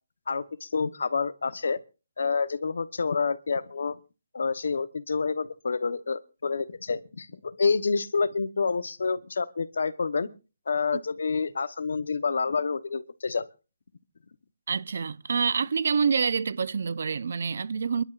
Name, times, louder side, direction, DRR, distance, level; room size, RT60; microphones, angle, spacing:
voice 1, 0.3-1.8 2.2-4.0 4.3-10.3 10.7-13.5, left 4 dB, 65° left, 1.0 m, -28 dB
voice 2, 14.7-18.0, right 6 dB, 50° right, 0.7 m, -27 dB
28.0 x 11.5 x 2.5 m
hypercardioid pair, 175°, 0 cm